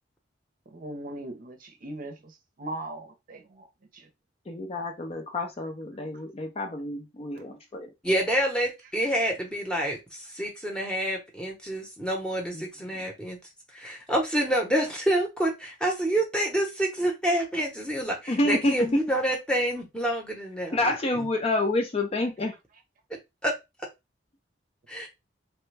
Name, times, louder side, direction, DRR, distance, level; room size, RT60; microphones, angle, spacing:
voice 1, 0.7-3.7 3.9-4.1, right 1 dB, 45° right, 0.6 m, -39 dB
voice 2, 4.5-7.9 12.5-12.6 18.3-19.0 20.7-22.5, left 1 dB, 35° left, 0.5 m, -28 dB
voice 3, 8.0-13.4 13.7-20.8 23.4-23.5 24.9-25.1, right 1 dB, 5° left, 0.9 m, -27 dB
3.1 x 2.2 x 3.2 m
head